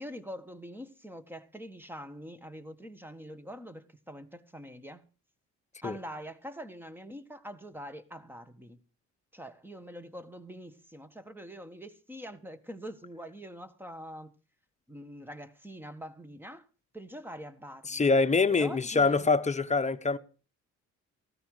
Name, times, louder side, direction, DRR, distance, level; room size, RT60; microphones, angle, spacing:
voice 1, 0.0-5.0 5.8-8.8 9.3-14.3 14.9-16.6 16.9-18.1 18.5-19.3, equal, 5° right, 1.5 m, -44 dB
voice 2, 17.9-20.2, left 4 dB, 25° left, 1.1 m, -25 dB
15.5 x 12.5 x 4.9 m
cardioid pair, 90°, 30 cm